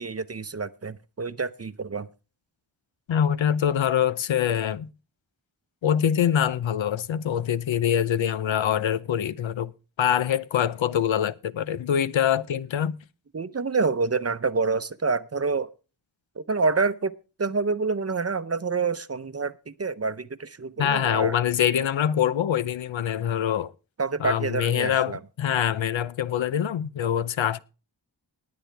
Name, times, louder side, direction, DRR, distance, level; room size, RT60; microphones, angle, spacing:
voice 1, 0.0-2.1 13.3-15.7 16.4-17.1 17.4-21.4 24.0-25.2, right 4 dB, 35° right, 0.7 m, -27 dB
voice 2, 3.1-4.9 5.8-9.7 10.0-13.0 20.8-23.7 24.2-27.6, left 9 dB, 90° left, 0.6 m, -24 dB
19.5 x 8.6 x 3.4 m
wide cardioid pair, 70°, 45 cm